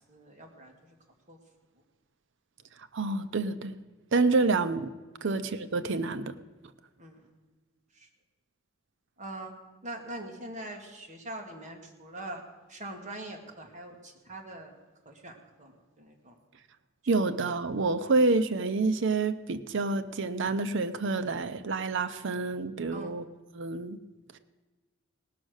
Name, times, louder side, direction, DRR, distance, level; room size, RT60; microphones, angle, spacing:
voice 1, 0.1-0.9 1.3-1.4 5.2-5.4 7.0-7.2 7.9-8.1 9.2-9.5 9.8-12.4 12.7-14.8 15.0-16.4 18.0-18.1 22.9-23.1, right 1 dB, 35° right, 2 dB, 1.7 m, -43 dB
voice 2, 2.9-3.8 4.1-4.9 5.2-6.4 17.1-23.3 23.5-24.0 24.3-24.4, right 3 dB, 65° right, 11 dB, 0.6 m, -28 dB
18.0 x 6.4 x 6.4 m, 1.2 s
head